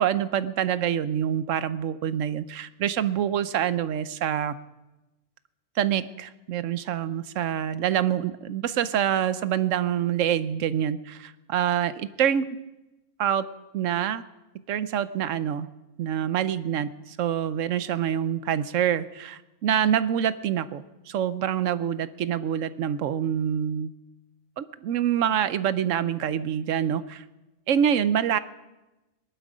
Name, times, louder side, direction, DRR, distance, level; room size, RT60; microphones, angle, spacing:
voice 1, 0.0-4.5 5.8-12.6 13.2-13.5 13.7-14.2 14.7-15.7 16.0-23.9 24.6-27.2 27.7-28.4, right 9 dB, 85° right, 14 dB, 1.0 m, -26 dB
21.5 x 11.5 x 5.0 m, 1.0 s
omnidirectional pair, 1.3 m